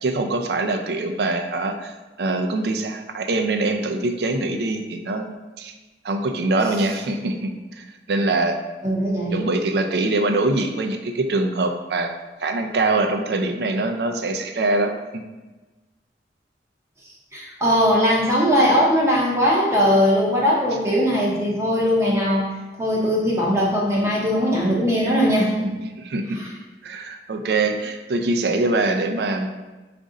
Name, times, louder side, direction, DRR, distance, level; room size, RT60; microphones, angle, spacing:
voice 1, 0.0-1.9 2.2-5.7 6.0-8.6 9.3-12.1 12.4-15.2 26.0-26.4 26.8-29.5, right 2 dB, 60° right, 4 dB, 0.4 m, -23 dB
voice 2, 8.8-9.4 17.3-22.5 22.8-25.8 26.4-26.5, equal, 15° right, -4 dB, 0.6 m, -20 dB
5.1 x 2.5 x 3.7 m, 1.2 s
head